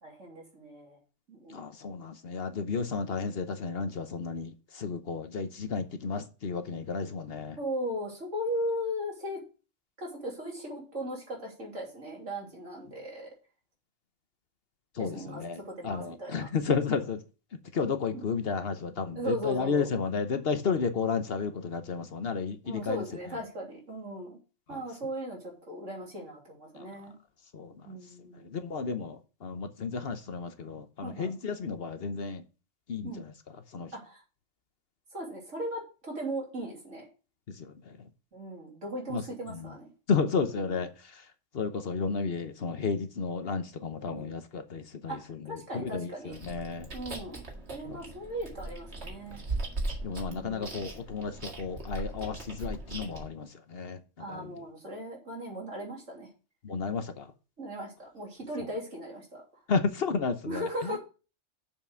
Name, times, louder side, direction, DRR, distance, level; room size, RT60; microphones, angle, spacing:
voice 1, 0.0-1.0 1.3-1.6 7.6-9.4 10.0-13.3 15.0-16.5 18.1-18.2 19.1-19.9 22.6-24.4 24.7-27.1 27.8-28.6 31.0-31.3 33.0-33.3 33.9-34.2 35.1-37.1 38.3-39.9 40.4-40.8 44.1-44.3 45.1-46.4 46.9-47.4 47.7-49.4 50.3-50.8 54.2-56.3 57.6-59.4 60.4-61.0, equal, 80° right, 3.5 m, -37 dB
voice 2, 1.5-7.6 15.0-17.2 17.7-23.0 24.7-24.8 26.8-26.9 27.5-27.7 28.5-32.4 32.9-33.1 33.7-33.9 37.6-37.7 39.1-39.2 39.5-39.6 40.1-40.9 41.5-46.9 50.0-54.0 54.3-54.5 56.6-57.3 59.7-61.0, left 5 dB, 55° left, 1.1 m, -32 dB
Chewing mastication, 46.3-53.3, right 2 dB, 60° right, 2.2 m, -39 dB
6.8 x 5.8 x 6.4 m
omnidirectional pair, 1.3 m